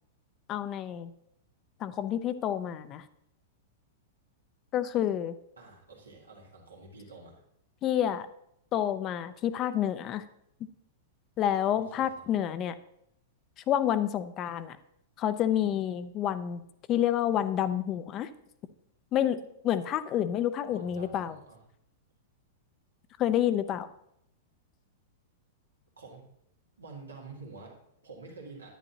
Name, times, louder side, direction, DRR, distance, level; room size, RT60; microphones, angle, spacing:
voice 1, 0.5-1.1 1.8-3.0 4.7-5.3 7.8-8.3 8.7-10.2 11.4-12.7 13.7-14.8 15.2-16.6 16.9-18.3 19.1-19.4 19.6-21.4 23.2-23.9, left 10 dB, 35° left, 13 dB, 0.6 m, -28 dB
voice 2, 5.6-7.4 11.7-12.2 20.7-21.6 26.0-26.2 26.8-28.7, right 3 dB, 85° right, -1 dB, 2.2 m, -48 dB
10.0 x 9.7 x 2.9 m, 0.75 s
hypercardioid pair, 105°, 0 cm